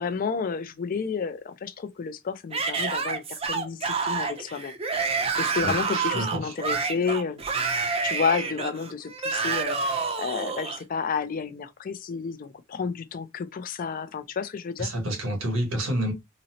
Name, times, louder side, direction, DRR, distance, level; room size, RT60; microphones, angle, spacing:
voice 1, 0.0-4.7 5.0-7.4 8.0-14.9, left 5 dB, 45° left, 0.4 m, -31 dB
Yell / Screaming, 2.5-10.8, right 4 dB, 30° right, 0.5 m, -28 dB
voice 2, 5.6-6.5 14.8-16.1, right 1 dB, 85° right, 1.3 m, -29 dB
3.9 x 2.0 x 2.7 m
head